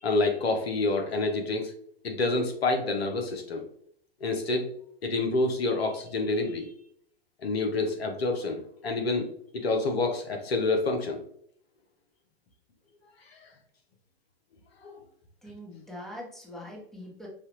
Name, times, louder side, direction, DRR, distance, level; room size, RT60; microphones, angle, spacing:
voice 1, 0.0-1.7 2.0-3.6 4.2-4.7 5.0-6.7 7.4-9.3 9.5-11.2 13.3-13.5 14.8-15.0, left 2 dB, 85° left, 4 dB, 1.0 m, -28 dB
voice 2, 15.4-17.3, left 1 dB, ahead, -3 dB, 1.4 m, -42 dB
5.4 x 2.8 x 3.1 m, 0.67 s
hypercardioid pair, 110°, 30 cm